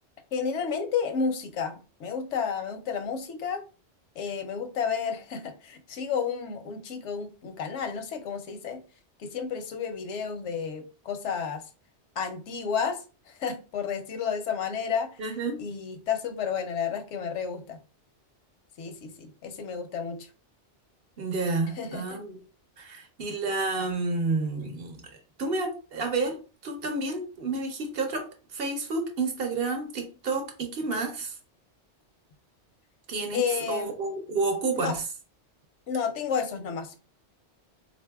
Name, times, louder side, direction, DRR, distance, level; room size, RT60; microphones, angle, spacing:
voice 1, 0.3-3.6 4.2-8.8 9.2-11.6 12.2-15.2 15.6-17.8 18.8-20.3 21.7-22.2 33.3-33.9 34.8-35.0 35.9-36.9, left 6 dB, 85° left, 7 dB, 0.9 m, -31 dB
voice 2, 15.2-15.6 21.2-22.4 22.8-25.0 25.4-26.4 26.6-31.3 33.1-35.0, right 3 dB, 60° right, 4 dB, 0.9 m, -30 dB
3.8 x 2.6 x 2.2 m, 0.34 s
omnidirectional pair, 1.2 m